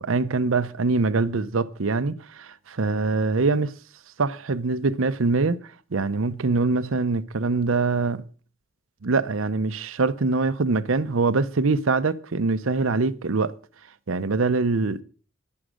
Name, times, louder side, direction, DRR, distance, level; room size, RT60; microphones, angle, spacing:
voice 1, 0.0-3.7 4.2-5.6 5.9-8.2 9.0-13.5 14.1-15.0, right 3 dB, 75° right, 0.7 m, -23 dB
11.5 x 10.5 x 6.3 m
head